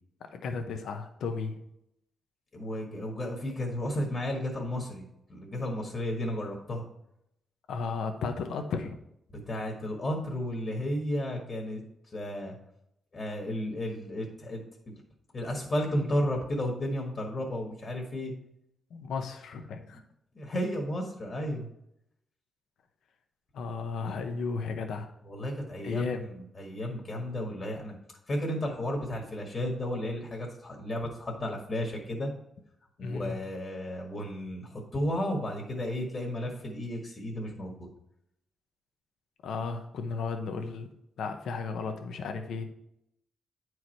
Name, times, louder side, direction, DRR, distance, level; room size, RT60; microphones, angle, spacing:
voice 1, 0.3-1.5 7.7-9.0 18.9-20.0 23.5-25.1 25.8-26.3 33.0-33.4 39.4-40.9 41.2-42.6, left 4 dB, 85° left, 6 dB, 0.9 m, -34 dB
voice 2, 2.5-5.0 5.3-6.8 9.3-11.8 12.1-12.5 13.1-14.6 15.3-18.3 20.3-21.7 24.0-24.1 25.2-28.0 28.3-32.3 33.0-37.9, left 1 dB, 35° left, 0 dB, 1.5 m, -33 dB
9.7 x 4.8 x 4.5 m, 0.78 s
wide cardioid pair, 165°, 0 cm